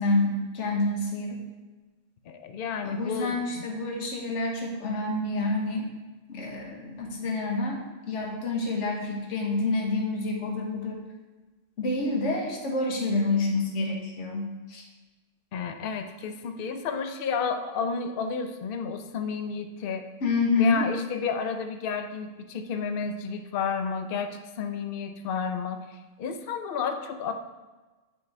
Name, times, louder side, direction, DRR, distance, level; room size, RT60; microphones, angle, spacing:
voice 1, 0.0-1.4 2.8-5.9 6.3-11.0 11.8-14.8 20.2-20.9, left 2 dB, 75° left, 0 dB, 1.4 m, -28 dB
voice 2, 2.3-3.6 15.5-20.1 20.5-27.3, left 6 dB, 55° left, 7 dB, 0.7 m, -31 dB
8.7 x 6.0 x 3.3 m, 1.2 s
omnidirectional pair, 1.3 m